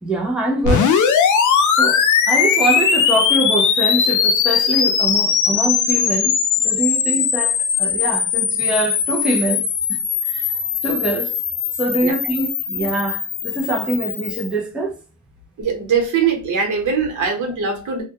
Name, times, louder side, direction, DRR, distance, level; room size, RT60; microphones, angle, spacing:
voice 1, 0.0-1.0 1.7-10.0 10.3-10.5 10.8-11.3 11.8-14.9, right 1 dB, 5° right, 0.4 m, -24 dB
sound 1, 0.6-14.5, left 7 dB, 85° left, 0.5 m, -19 dB
voice 2, 15.6-18.0, right 6 dB, 85° right, 1.0 m, -21 dB
2.2 x 2.1 x 2.7 m
wide cardioid pair, 175°, 30 cm